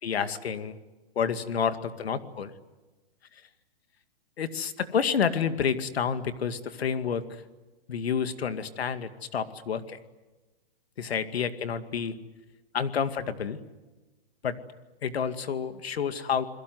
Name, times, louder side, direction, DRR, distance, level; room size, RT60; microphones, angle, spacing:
voice 1, 0.0-0.8 1.2-2.5 4.4-7.3 7.9-10.0 11.0-12.2 12.7-13.6 14.4-14.6 15.0-16.4, left 7 dB, 85° left, 10 dB, 2.3 m, -29 dB
29.0 x 21.5 x 7.9 m, 1.1 s
hypercardioid pair, 175°, 30 cm